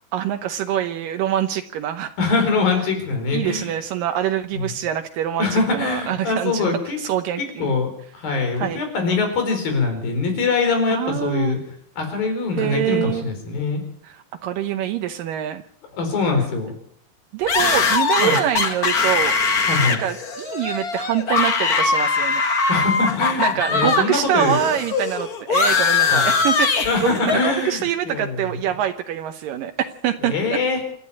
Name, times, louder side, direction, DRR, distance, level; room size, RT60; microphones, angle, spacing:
voice 1, 0.1-2.1 3.3-6.7 7.0-7.7 8.6-8.8 10.9-11.6 12.5-13.3 14.0-15.6 17.3-19.3 20.0-22.4 23.4-29.7 30.0-30.6, right 11 dB, 80° right, 7 dB, 2.5 m, -25 dB
voice 2, 2.2-3.8 4.5-4.7 5.4-7.0 7.4-11.6 12.0-13.8 15.9-16.7 18.2-18.4 19.7-20.0 22.7-24.6 26.1-26.3 26.9-28.6 30.2-30.8, left 4 dB, 90° left, 5 dB, 6.4 m, -23 dB
sound 1, 17.5-24.1 24.3-27.5, left 4 dB, 40° left, 1.5 m, -21 dB
27.0 x 11.5 x 8.7 m, 0.65 s
omnidirectional pair, 4.0 m